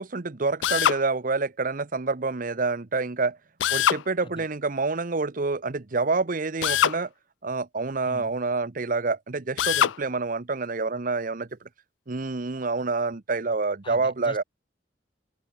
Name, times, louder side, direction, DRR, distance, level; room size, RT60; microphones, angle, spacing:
voice 1, 0.0-3.4 3.7-7.1 7.4-11.5 12.1-14.4, right 3 dB, 45° right, 0.9 m, -27 dB
Drill, 0.6-1.0 3.6-4.0 6.6-7.0 9.6-10.0, left 10 dB, 85° left, 0.4 m, -22 dB
voice 2, 13.8-14.4, left 1 dB, 25° left, 4.3 m, -42 dB
open air
head